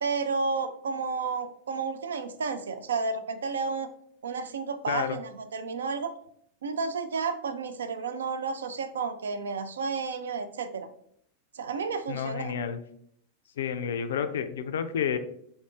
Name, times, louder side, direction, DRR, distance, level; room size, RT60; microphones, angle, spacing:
voice 1, 0.0-3.9 4.2-6.1 6.6-10.9 11.5-12.5, right 4 dB, 65° right, 10 dB, 0.3 m, -31 dB
voice 2, 4.9-5.2 12.1-12.8 13.6-15.2, left 7 dB, 60° left, 10 dB, 0.3 m, -30 dB
3.9 x 3.6 x 2.4 m, 0.67 s
figure-of-eight pair, 90°, 0 cm